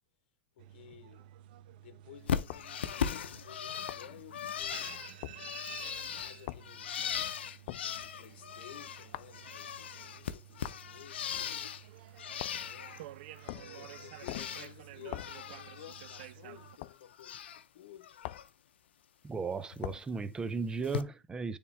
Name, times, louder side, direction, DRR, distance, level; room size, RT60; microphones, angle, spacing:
voice 1, 0.6-1.3 1.8-5.0 5.8-7.0 8.0-11.3 12.2-13.1 13.6-18.2, left 11 dB, 70° left, 1.0 m, -54 dB
sound 1, 0.6-16.8, right 12 dB, 60° right, 0.5 m, -52 dB
Bird, 2.3-9.1 9.3-11.8 12.2-13.0 13.4-14.7 15.0-16.3 16.6-17.6 18.0-18.4 19.7-19.8 20.8-21.0, left 8 dB, 85° left, 0.7 m, -39 dB
sound 2, 2.5-2.7 3.9-4.1 5.2-5.4 6.5-6.7 7.7-7.9 9.1-9.4 10.6-10.8 12.4-12.7 13.5-13.8 14.3-14.6 15.1-15.4 16.8-17.0 18.2-18.5 19.8-20.1, left 17 dB, 55° left, 0.3 m, -42 dB
voice 2, 19.2-21.6, right 4 dB, 15° right, 0.5 m, -36 dB
9.2 x 3.6 x 3.4 m
hypercardioid pair, 125°, 6 cm